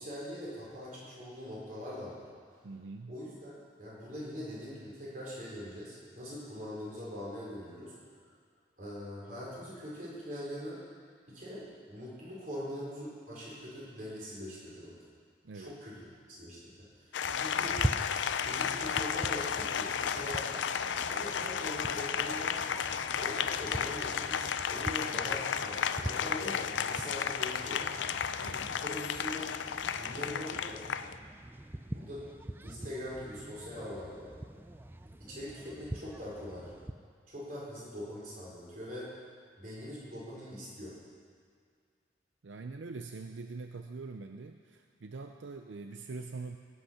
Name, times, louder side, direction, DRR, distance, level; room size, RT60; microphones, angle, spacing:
voice 1, 0.0-2.2 3.1-7.9 8.2-8.3 8.8-10.8 11.3-15.0 15.5-17.8 18.4-20.5 21.0-22.6 23.0-27.8 28.5-29.6 30.0-30.8 31.9-32.2 32.6-34.3 35.2-36.7 37.3-39.1 39.6-40.9, equal, 45° right, -6 dB, 4.4 m, -42 dB
voice 2, 2.6-3.2 15.4-15.8 28.4-28.7 42.4-46.6, right 3 dB, 85° right, 6 dB, 0.5 m, -43 dB
Applause, 17.1-31.2, left 7 dB, 80° left, 0.4 m, -33 dB
sound 1, 17.2-36.9, right 1 dB, 10° right, 0.3 m, -43 dB
17.5 x 8.4 x 5.8 m, 2.1 s
head